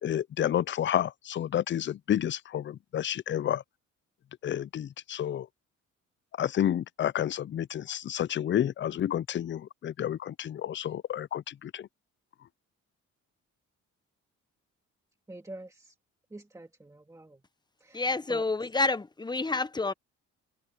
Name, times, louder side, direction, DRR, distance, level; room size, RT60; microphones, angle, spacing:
voice 1, 0.0-3.6 4.4-5.5 6.4-11.9, left 10 dB, 40° left, 0.5 m, -30 dB
voice 2, 15.3-15.9 16.3-17.4 17.8-18.0 18.3-18.4, right 2 dB, 10° right, 1.9 m, -46 dB
voice 3, 17.9-19.9, left 3 dB, 15° left, 0.9 m, -28 dB
cardioid pair, 90°, 30 cm